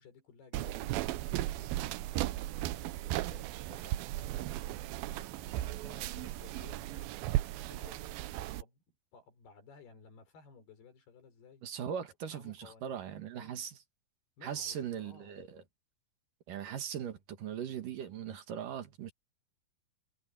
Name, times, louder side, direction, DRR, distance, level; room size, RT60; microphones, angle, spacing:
voice 1, 0.0-2.0 2.7-7.2 7.6-11.7 12.3-13.5 14.4-15.4, left 6 dB, 85° left, 6.6 m, -58 dB
sound 1, 0.5-8.6, right 15 dB, 80° right, 2.4 m, -36 dB
voice 2, 11.6-13.8 14.4-15.6 16.5-19.1, right 8 dB, 65° right, 3.1 m, -39 dB
omnidirectional pair, 4.5 m